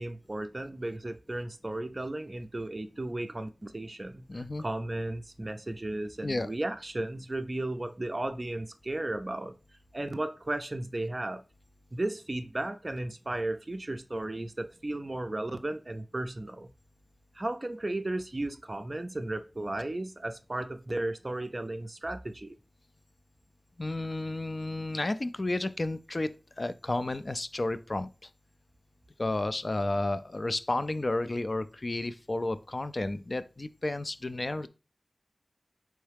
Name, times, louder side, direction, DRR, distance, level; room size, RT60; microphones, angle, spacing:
voice 1, 0.0-9.5 9.9-11.4 11.9-16.7 17.3-22.5, right 1 dB, 35° right, 0.4 m, -35 dB
voice 2, 4.3-4.6 6.2-6.5 23.8-26.3 26.6-28.3 29.2-34.7, left 2 dB, 45° left, 0.3 m, -32 dB
4.6 x 3.1 x 3.3 m
wide cardioid pair, 60°, 0 cm